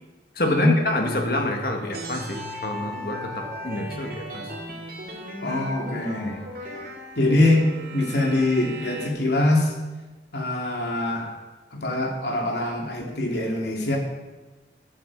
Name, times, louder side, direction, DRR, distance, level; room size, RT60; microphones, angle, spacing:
voice 1, 0.4-4.5, left 1 dB, 55° left, 2 dB, 2.0 m, -27 dB
sound 1, 1.9-9.1, equal, 55° right, 2.8 m, -37 dB
voice 2, 5.4-6.4 7.2-9.7 10.3-11.4 11.7-14.0, left 2 dB, 75° left, 0 dB, 2.8 m, -23 dB
14.5 x 9.7 x 4.8 m, 1.2 s
head